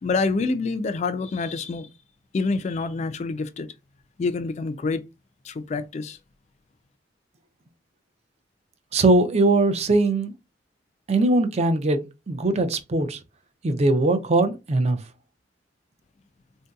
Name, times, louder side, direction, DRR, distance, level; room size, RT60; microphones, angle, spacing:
voice 1, 0.0-1.9 2.3-3.7 4.2-5.0 5.4-6.2, left 3 dB, 40° left, 0.3 m, -27 dB
voice 2, 8.9-10.3 11.1-13.2 13.6-15.0, right 2 dB, 35° right, 0.5 m, -21 dB
3.7 x 2.7 x 2.3 m
head